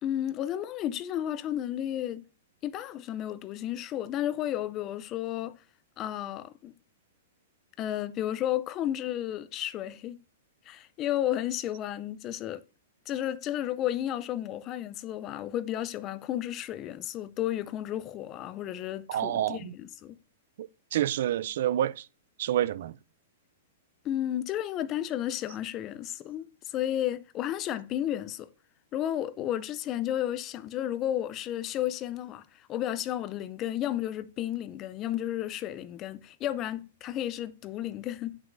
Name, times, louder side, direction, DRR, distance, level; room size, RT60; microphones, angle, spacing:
voice 1, 0.0-2.2 2.6-5.6 6.0-6.7 7.8-10.2 10.7-12.6 13.1-20.2 24.0-28.5 28.9-38.4, left 12 dB, 25° left, 0.4 m, -32 dB
voice 2, 19.1-19.7 20.6-22.0 22.4-22.9, right 11 dB, 55° right, 0.3 m, -28 dB
9.2 x 6.1 x 2.6 m
hypercardioid pair, 165°, 0 cm